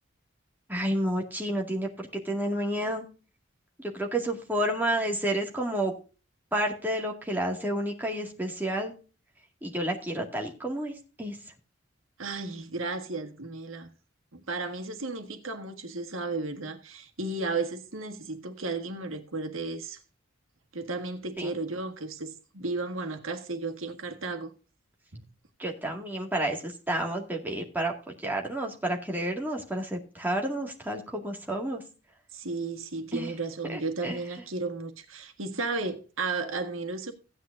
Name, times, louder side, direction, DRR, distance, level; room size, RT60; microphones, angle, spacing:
voice 1, 0.7-3.0 3.8-5.9 6.5-8.9 9.6-11.4 21.4-21.5 25.6-27.9 28.2-31.8 33.1-33.3 33.7-34.2, right 1 dB, 10° right, 2.0 m, -30 dB
voice 2, 12.2-13.9 14.3-20.0 20.7-24.5 25.1-25.2 32.3-37.1, right 3 dB, 80° right, 1.7 m, -34 dB
16.0 x 9.5 x 2.6 m
head